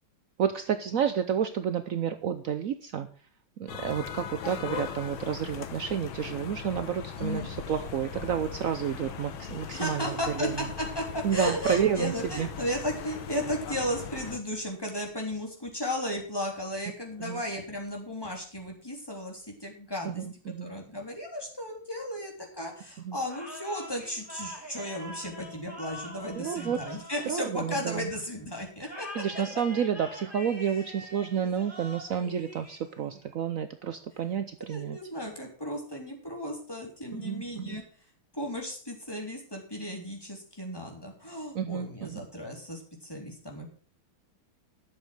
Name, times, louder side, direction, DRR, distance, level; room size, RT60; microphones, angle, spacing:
voice 1, 0.4-3.3 3.6-10.7 11.2-12.5 17.2-17.4 20.0-20.7 23.0-23.2 26.3-27.0 27.2-28.1 29.1-35.0 37.1-37.8 41.5-42.3, right 8 dB, 70° right, 9 dB, 0.7 m, -30 dB
sound 1, 3.7-14.4, left 7 dB, 70° left, 1.9 m, -39 dB
voice 2, 9.7-20.1 20.6-29.1 30.1-30.2 31.3-31.5 32.2-32.5 34.7-37.8 38.3-43.7, left 1 dB, 10° left, 0 dB, 3.5 m, -35 dB
sound 2, 23.2-28.1 28.8-33.2, equal, 5° right, 5.4 m, -45 dB
12.0 x 7.3 x 6.5 m, 0.42 s
omnidirectional pair, 2.3 m